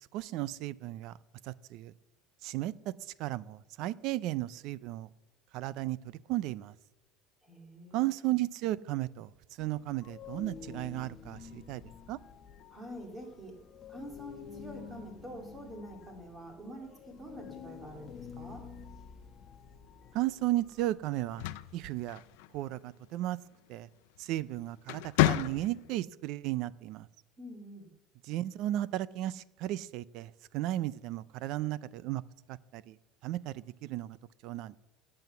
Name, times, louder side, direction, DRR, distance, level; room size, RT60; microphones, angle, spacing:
voice 1, 0.1-1.1 1.4-1.9 2.4-2.9 3.2-5.1 5.5-6.0 6.3-6.7 7.9-9.3 9.6-11.8 12.1-12.2 20.1-21.5 21.7-22.2 22.5-23.4 23.7-23.9 24.2-27.1 28.2-32.2 32.5-33.0 33.2-34.2 34.4-34.8, right 15 dB, 55° right, 20 dB, 0.5 m, -34 dB
voice 2, 7.4-8.3 12.7-13.6 13.9-18.7 27.4-27.9, equal, 15° right, 2 dB, 2.6 m, -46 dB
sound 1, 9.6-22.4, left 7 dB, 30° left, 1.2 m, -49 dB
sound 2, 21.2-22.7 24.2-24.4 24.8-26.0, left 16 dB, 75° left, 0.6 m, -30 dB
18.5 x 7.8 x 7.0 m, 1.0 s
cardioid pair, 155°, 0 cm